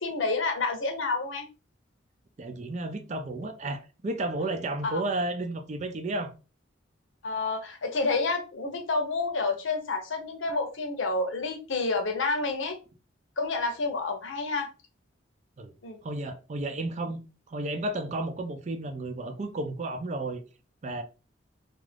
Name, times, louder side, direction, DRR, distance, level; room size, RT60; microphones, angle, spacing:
voice 1, 0.0-1.5 4.8-5.0 7.2-12.8 13.4-14.7 15.8-16.0, left 3 dB, 80° left, 0.8 m, -29 dB
voice 2, 2.4-6.3 15.6-15.7 16.0-17.2 17.5-20.4 20.8-21.0, right 2 dB, 35° right, 0.4 m, -32 dB
2.5 x 2.4 x 3.3 m
head